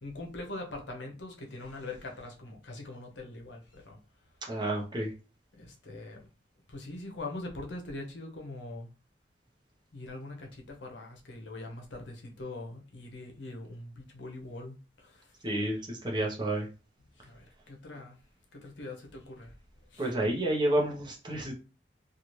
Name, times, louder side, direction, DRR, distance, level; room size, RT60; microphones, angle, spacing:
voice 1, 0.0-4.0 5.5-6.2 6.7-8.9 9.9-15.3 17.2-18.2 18.5-19.5 19.9-20.1, left 2 dB, 75° left, 0.7 m, -42 dB
voice 2, 4.5-5.1 15.4-16.7 20.0-21.5, right 1 dB, 25° right, 0.7 m, -30 dB
2.7 x 2.4 x 3.0 m
head